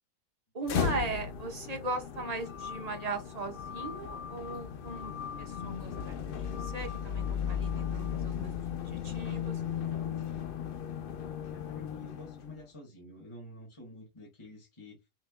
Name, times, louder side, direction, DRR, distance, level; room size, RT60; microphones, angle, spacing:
voice 1, 0.5-5.1 5.4-9.6, right 3 dB, 30° right, 0.9 m, -38 dB
sound 1, 0.6-12.6, left 8 dB, 60° left, 0.6 m, -36 dB
sound 2, 2.2-8.2, left 7 dB, 40° left, 1.1 m, -46 dB
voice 2, 11.5-15.0, left 1 dB, 20° left, 1.4 m, -49 dB
5.7 x 3.4 x 2.2 m
omnidirectional pair, 1.5 m